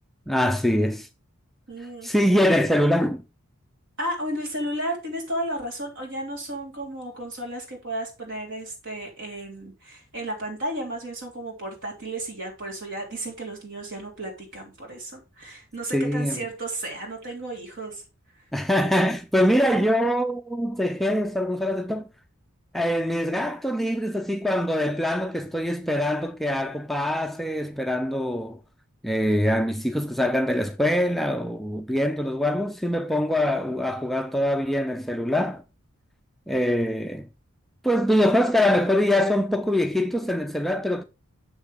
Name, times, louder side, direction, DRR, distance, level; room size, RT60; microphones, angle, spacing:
voice 1, 0.3-1.1 2.0-3.2 15.9-16.4 18.5-22.1 22.7-28.6 29.0-35.6 36.5-37.3 37.8-41.0, left 1 dB, ahead, 0.4 m, -23 dB
voice 2, 1.7-2.1 4.0-18.0, right 1 dB, 60° right, 3.2 m, -33 dB
7.3 x 6.5 x 3.5 m
head